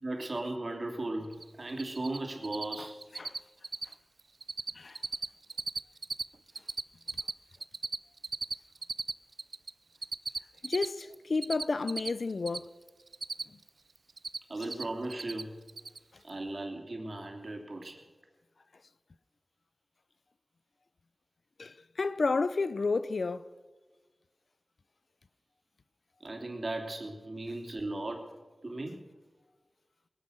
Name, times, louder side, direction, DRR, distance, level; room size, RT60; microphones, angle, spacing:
voice 1, 0.0-3.0 14.5-15.5 16.2-18.0 26.2-28.3 28.6-29.0, right 2 dB, 55° right, 3.1 m, -37 dB
Cricket, 1.3-1.4 1.7-2.2 2.4-2.8 3.0-3.4 3.6-3.9 4.2-4.7 5.0-6.2 6.5-9.7 10.0-12.6 12.9-13.7 14.0-14.8 15.1-15.4 15.7-16.0, right 4 dB, 75° right, 0.4 m, -35 dB
voice 2, 10.6-12.7 21.6-23.5, left 3 dB, 80° left, 0.6 m, -31 dB
20.5 x 10.0 x 6.5 m
wide cardioid pair, 50°, 0 cm